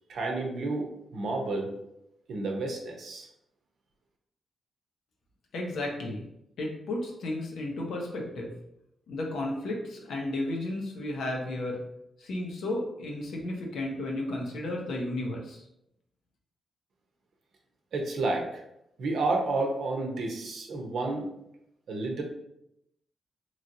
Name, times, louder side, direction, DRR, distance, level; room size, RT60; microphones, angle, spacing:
voice 1, 0.1-1.7 2.3-3.3 17.9-18.6 19.0-21.3 21.9-22.2, right 2 dB, 75° right, 1 dB, 0.7 m, -30 dB
voice 2, 5.5-6.2 6.6-8.5 9.1-11.8 12.2-15.6, left 1 dB, 80° left, 0 dB, 0.7 m, -33 dB
3.0 x 2.8 x 2.6 m, 0.80 s
cardioid pair, 60°, 0 cm